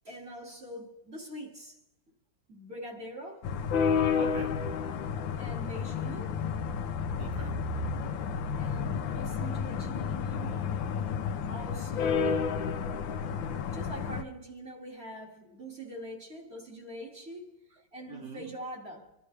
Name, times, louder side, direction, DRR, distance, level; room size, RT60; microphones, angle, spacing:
voice 1, 0.0-1.8 2.5-3.5 5.4-6.4 8.6-10.7 11.5-12.8 13.7-19.2, equal, 30° right, 2.4 m, -43 dB
sound 1, 3.4-14.2, left 6 dB, 80° left, 1.5 m, -31 dB
voice 2, 4.1-4.7 7.2-7.7 15.4-15.6 18.1-18.5, right 4 dB, 55° right, 1.8 m, -46 dB
26.0 x 12.0 x 3.3 m
omnidirectional pair, 2.1 m